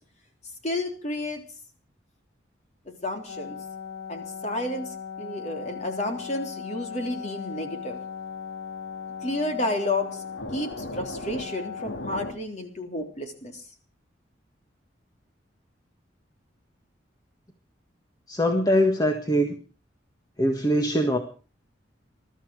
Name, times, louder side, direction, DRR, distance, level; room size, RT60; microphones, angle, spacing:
voice 1, 0.6-1.4 3.0-3.6 4.1-4.9 5.2-8.0 9.2-10.2 10.5-13.6, left 1 dB, 40° left, 4 dB, 3.5 m, -31 dB
sound 1, 3.3-12.3, left 5 dB, 90° left, 2.3 m, -37 dB
voice 2, 18.3-19.6 20.4-21.2, equal, 20° left, 4 dB, 1.7 m, -22 dB
21.0 x 13.0 x 4.9 m, 0.39 s
head